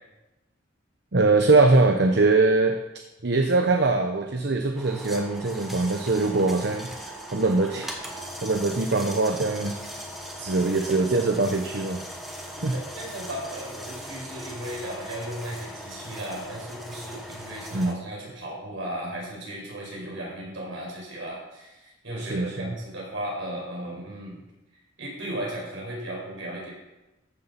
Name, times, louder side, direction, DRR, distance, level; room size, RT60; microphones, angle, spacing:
voice 1, 1.1-2.8 3.2-9.9 10.4-12.0 12.6-12.7 17.7-18.0 22.2-22.7, right 3 dB, 60° right, 5 dB, 0.8 m, -22 dB
sound 1, 4.8-17.9, equal, ahead, 1.3 m, -39 dB
voice 2, 12.6-24.4 25.0-26.7, right 1 dB, 75° right, -3 dB, 5.2 m, -36 dB
14.0 x 6.9 x 5.9 m, 1.0 s
head